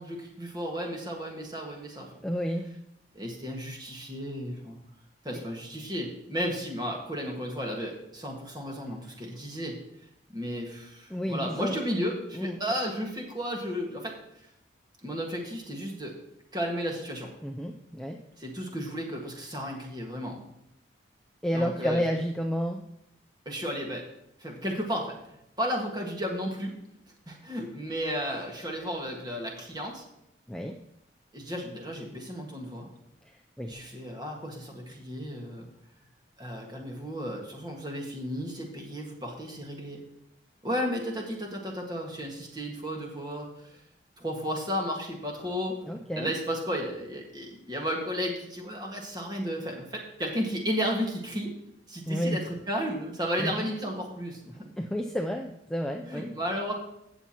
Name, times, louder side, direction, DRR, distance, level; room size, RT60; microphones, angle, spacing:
voice 1, 0.0-2.1 3.1-4.8 5.2-9.8 10.3-14.1 15.0-16.1 16.5-17.3 18.4-20.4 21.5-22.0 23.4-24.0 24.4-26.7 27.3-30.0 31.3-32.9 33.7-35.7 36.4-40.0 40.6-43.8 44.2-51.5 51.9-54.4 56.0-56.7, equal, 20° right, 0 dB, 1.6 m, -33 dB
voice 2, 2.2-2.7 11.1-11.7 12.4-12.6 17.4-18.2 21.4-22.8 30.5-30.8 33.6-33.9 45.9-46.3 52.1-52.4 53.4-53.5 54.8-56.3, equal, 5° left, 1 dB, 0.4 m, -30 dB
16.0 x 7.0 x 2.9 m, 0.79 s
head